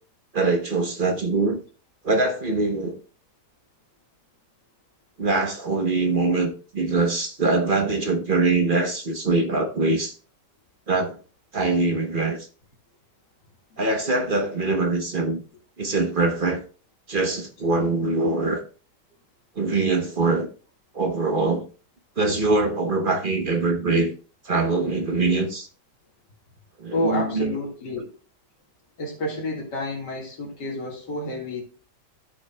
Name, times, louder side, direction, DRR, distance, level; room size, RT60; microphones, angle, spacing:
voice 1, 0.3-1.6 2.0-3.0 5.2-10.1 10.9-11.2 11.5-12.5 13.8-15.4 15.8-16.6 17.1-18.6 19.6-20.5 20.9-21.7 22.2-24.1 24.4-25.7 26.8-27.6, right 3 dB, 40° right, 0.9 m, -23 dB
voice 2, 26.9-28.1 29.0-31.6, left 1 dB, 85° left, 2.6 m, -29 dB
12.5 x 6.4 x 2.2 m
omnidirectional pair, 1.8 m